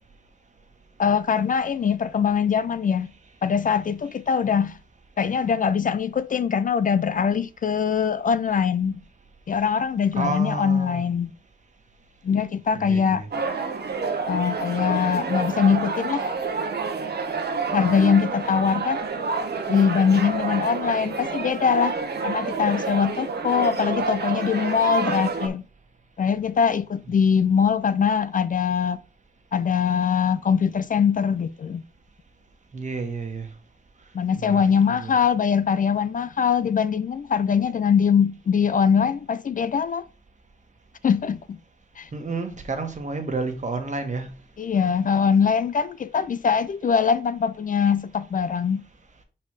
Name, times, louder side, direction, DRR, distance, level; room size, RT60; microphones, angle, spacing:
voice 1, 1.0-3.1 3.4-4.8 5.2-9.0 9.5-11.3 12.2-13.2 14.3-16.3 17.7-19.0 19.7-22.0 22.2-25.6 26.2-29.0 29.5-31.8 34.1-40.0 41.0-41.6 42.0-42.1 44.6-48.8, left 6 dB, 50° left, 0.4 m, -22 dB
voice 2, 10.1-11.0 12.7-13.3 32.7-33.5 34.4-34.6 34.9-35.1 42.1-44.3, right 3 dB, 45° right, 1.4 m, -30 dB
sound 1, 13.3-25.5, right 4 dB, 70° right, 1.0 m, -28 dB
5.2 x 4.5 x 4.7 m
wide cardioid pair, 125°, 18 cm